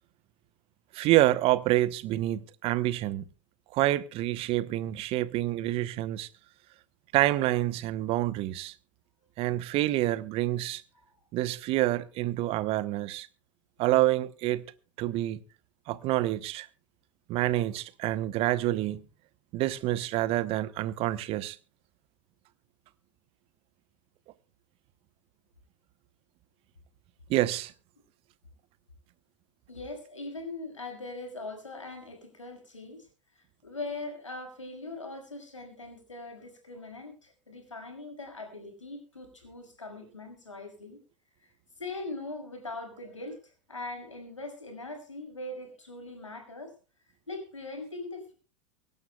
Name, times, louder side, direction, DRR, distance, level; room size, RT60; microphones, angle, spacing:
voice 1, 0.9-3.2 3.7-6.3 7.1-8.7 9.4-10.8 11.3-13.3 13.8-14.6 15.0-15.4 15.9-16.7 17.3-19.0 19.5-21.6 27.3-27.7, right 15 dB, 40° right, 1.0 m, -27 dB
voice 2, 29.7-33.1 33.4-41.0 41.4-41.5 41.8-46.7 47.3-48.3, left 2 dB, 80° left, 5.8 m, -41 dB
24.0 x 12.0 x 2.3 m
figure-of-eight pair, 85°, 16 cm